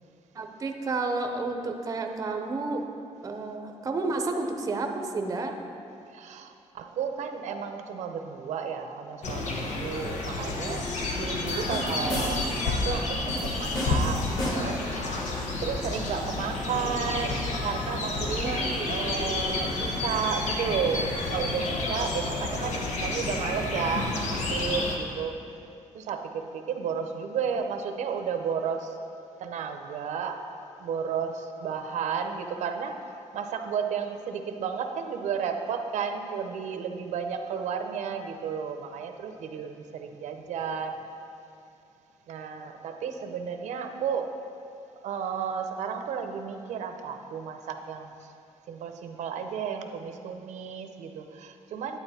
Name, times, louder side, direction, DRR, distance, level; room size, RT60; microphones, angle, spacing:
voice 1, 0.3-2.8 3.2-5.5 18.3-18.9, right 3 dB, 30° right, 4 dB, 0.7 m, -31 dB
voice 2, 6.1-14.8 15.6-25.4 25.9-29.0 29.4-30.4 30.8-33.0 33.3-41.0 42.3-44.3 45.0-48.3 48.7-52.0, right 6 dB, 85° right, 6 dB, 0.7 m, -33 dB
sound 1, 9.2-25.0, left 2 dB, 85° left, 1.2 m, -30 dB
sound 2, 11.5-12.6 13.3-14.8, equal, 35° left, 2.4 m, -33 dB
10.0 x 9.5 x 4.2 m, 2.5 s
wide cardioid pair, 170°, 12 cm